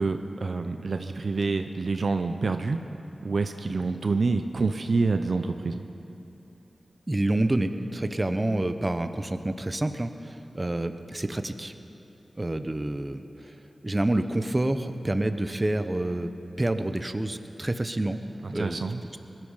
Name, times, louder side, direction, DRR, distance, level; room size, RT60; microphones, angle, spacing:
voice 1, 0.0-2.8 3.2-5.8 18.4-19.0, right 3 dB, 70° right, 7 dB, 0.7 m, -27 dB
voice 2, 7.1-11.7 12.4-13.6 13.8-16.3 16.6-18.2 18.5-18.8, right 1 dB, 30° right, 9 dB, 0.9 m, -28 dB
20.0 x 12.5 x 5.7 m, 3.0 s
cardioid pair, 40°, 0 cm